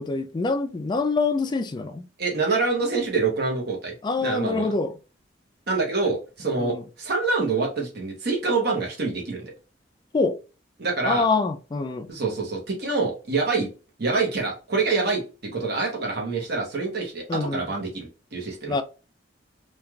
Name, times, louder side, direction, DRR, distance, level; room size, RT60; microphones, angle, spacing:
voice 1, 0.0-2.1 4.0-4.9 6.6-6.8 10.1-10.4 11.0-12.1 17.3-17.7 18.7-18.8, left 3 dB, 25° left, 0.3 m, -25 dB
voice 2, 2.2-4.7 5.7-9.5 10.8-11.3 12.1-13.7 14.0-18.7, right 3 dB, 60° right, 0.9 m, -26 dB
3.1 x 2.4 x 2.3 m
head